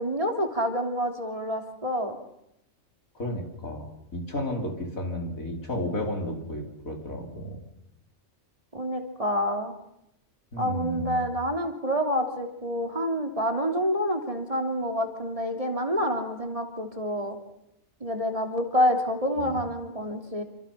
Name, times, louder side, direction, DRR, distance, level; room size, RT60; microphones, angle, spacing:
voice 1, 0.0-2.2 8.7-9.7 10.6-17.4 18.0-20.4, equal, 25° right, 3 dB, 3.1 m, -28 dB
voice 2, 3.1-7.6 10.5-11.4 19.4-19.6, left 1 dB, 90° left, 2 dB, 5.1 m, -33 dB
28.5 x 26.0 x 5.8 m, 0.83 s
omnidirectional pair, 1.4 m